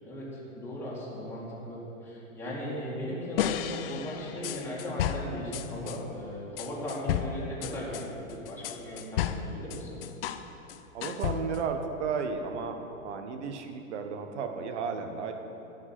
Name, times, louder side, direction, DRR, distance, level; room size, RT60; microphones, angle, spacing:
voice 1, 0.0-10.0, left 1 dB, 5° left, -7 dB, 2.2 m, -37 dB
sound 1, 3.4-6.0 6.6-10.4 10.7-11.7, left 10 dB, 45° left, 0.5 m, -33 dB
voice 2, 10.9-15.3, right 5 dB, 60° right, 6 dB, 1.1 m, -33 dB
11.0 x 5.1 x 7.5 m, 2.9 s
hypercardioid pair, 130°, 40 cm